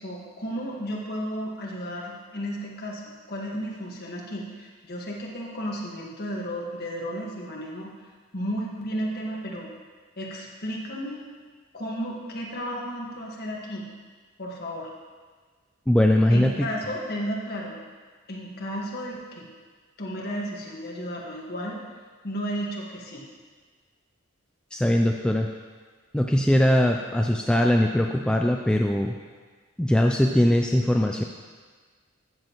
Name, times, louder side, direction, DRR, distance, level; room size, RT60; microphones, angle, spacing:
voice 1, 0.0-3.0 3.3-7.9 8.3-9.7 10.2-11.2 11.7-13.8 14.4-14.9 16.3-17.7 18.3-19.4 20.0-21.8 22.2-23.2, equal, 50° left, -3 dB, 1.6 m, -33 dB
voice 2, 15.9-16.7 24.7-25.5 26.1-29.1 29.8-31.2, left 1 dB, 5° left, 1 dB, 0.3 m, -21 dB
14.0 x 7.5 x 3.0 m, 1.5 s
head